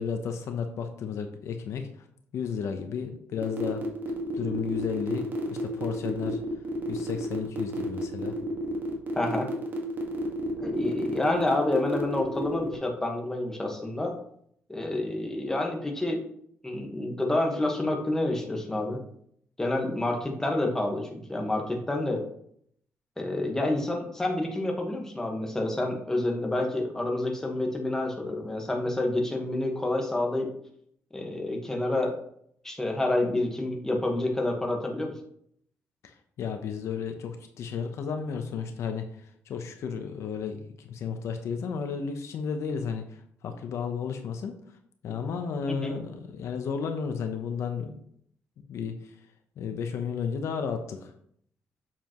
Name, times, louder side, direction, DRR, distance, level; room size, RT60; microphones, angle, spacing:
voice 1, 0.0-1.9 2.3-3.8 4.3-6.4 6.9-8.3 36.0-44.5 45.0-48.0 48.7-49.1 49.6-51.1, left 6 dB, 70° left, 6 dB, 0.9 m, -33 dB
sound 1, 3.4-12.8, right 3 dB, 40° right, 1.7 m, -33 dB
voice 2, 9.1-9.5 10.6-14.1 14.7-16.2 16.6-19.0 19.6-22.2 23.2-30.5 31.1-32.2 32.6-35.1 45.7-45.9, left 2 dB, 10° left, 1 dB, 1.5 m, -28 dB
7.5 x 7.0 x 3.1 m, 0.66 s
cardioid pair, 135°, 5 cm